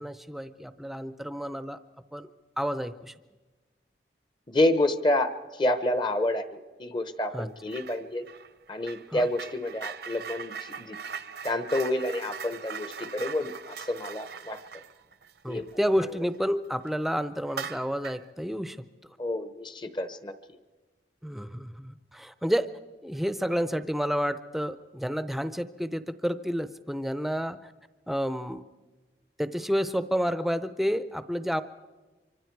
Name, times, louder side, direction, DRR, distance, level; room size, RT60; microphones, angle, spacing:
voice 1, 0.0-1.8 2.1-2.3 2.6-3.1 7.3-7.5 9.1-9.2 15.4-18.8 21.2-22.7 23.0-27.7 28.1-28.6 29.4-31.6, equal, ahead, 12 dB, 0.6 m, -30 dB
voice 2, 4.5-8.3 8.7-11.0 11.4-14.6 15.5-15.7 19.2-20.3, left 1 dB, 25° left, 10 dB, 0.9 m, -29 dB
sound 1, 7.7-8.0 8.3-16.4 16.8-16.9 17.5-18.3, right 6 dB, 70° right, 0.9 m, -41 dB
25.5 x 24.5 x 4.7 m, 1.2 s
head